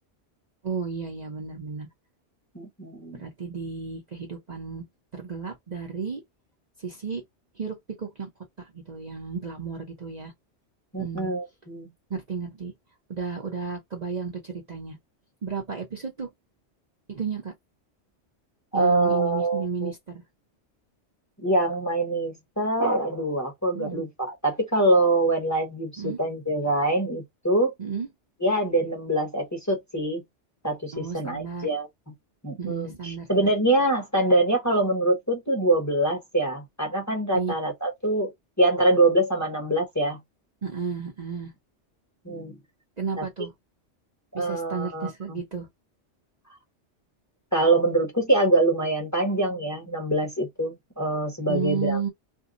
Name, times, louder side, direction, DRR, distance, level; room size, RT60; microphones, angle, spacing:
voice 1, 0.6-1.9 3.1-4.8 5.1-6.2 6.8-7.2 7.6-8.3 8.6-10.3 11.0-11.3 12.1-12.7 13.1-15.0 15.4-16.3 17.1-17.5 18.7-20.2 23.7-24.0 26.0-26.2 27.8-28.1 30.9-31.7 32.6-33.5 37.3-37.5 40.6-41.5 43.0-43.5 44.3-45.7 51.5-52.1, right 5 dB, 40° right, 0.8 m, -33 dB
voice 2, 2.5-3.2 10.9-11.9 18.7-19.9 21.4-27.7 28.4-30.2 30.6-31.9 32.4-38.3 38.6-40.2 42.2-42.6 43.2-43.3 44.3-45.4 47.5-52.1, right 2 dB, 15° left, 1.0 m, -24 dB
2.7 x 2.3 x 3.7 m
omnidirectional pair, 1.2 m